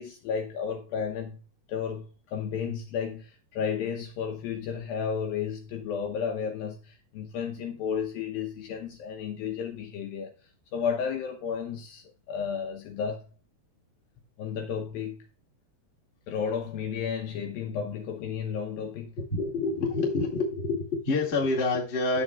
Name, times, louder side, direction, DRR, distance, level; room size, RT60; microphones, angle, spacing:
voice 1, 0.0-1.4 1.7-10.3 10.7-13.2 14.4-15.3 16.3-19.2, left 7 dB, 75° left, 2.3 m, -33 dB
voice 2, 19.3-22.2, left 3 dB, 30° left, 1.2 m, -27 dB
11.0 x 7.6 x 2.4 m
omnidirectional pair, 4.8 m